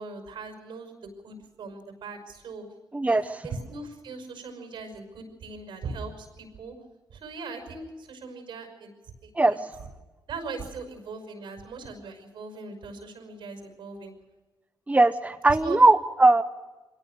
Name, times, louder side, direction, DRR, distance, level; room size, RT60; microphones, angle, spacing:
voice 1, 0.0-2.7 3.1-6.8 7.1-8.9 9.2-9.3 10.3-14.1 15.5-15.8, right 4 dB, 85° right, 5 dB, 5.6 m, -39 dB
voice 2, 2.9-3.4 9.3-9.6 14.9-16.4, right 2 dB, 15° right, 11 dB, 0.8 m, -20 dB
23.0 x 18.0 x 6.5 m, 1.2 s
cardioid pair, 65°, 8 cm